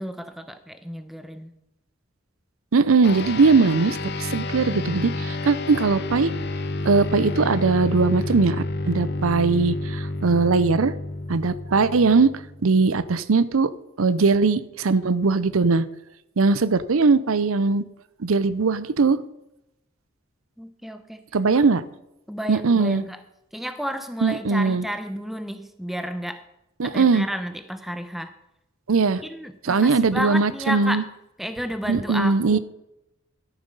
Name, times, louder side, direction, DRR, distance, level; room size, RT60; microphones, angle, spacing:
voice 1, 0.0-1.5 20.6-21.3 21.5-21.6 22.3-23.2 23.5-26.4 26.8-28.3 29.2-31.0 31.4-32.6, equal, ahead, 9 dB, 0.7 m, -32 dB
voice 2, 2.7-6.3 6.8-10.9 11.3-12.3 12.6-13.7 14.0-15.8 16.4-17.8 18.2-19.2 21.3-21.8 22.5-23.0 24.2-24.9 26.8-27.3 28.9-29.2 29.6-31.0 31.9-32.6, right 4 dB, 85° right, 15 dB, 0.6 m, -20 dB
sound 1, 3.0-12.8, left 2 dB, 50° left, 0.8 m, -30 dB
13.0 x 7.2 x 5.4 m, 0.88 s
head